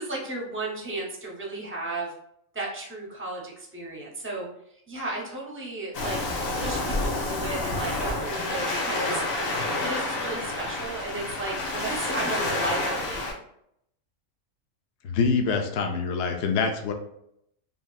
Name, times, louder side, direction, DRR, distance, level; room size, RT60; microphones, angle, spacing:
voice 1, 0.0-2.1 2.5-6.2 6.5-9.2 9.8-13.2, right 2 dB, 15° right, -3 dB, 0.4 m, -34 dB
Waves surf, 5.9-13.3, left 2 dB, 90° left, 1.1 m, -29 dB
voice 2, 15.0-16.9, left 5 dB, 65° left, 4 dB, 0.8 m, -25 dB
3.4 x 2.6 x 2.3 m, 0.75 s
omnidirectional pair, 1.4 m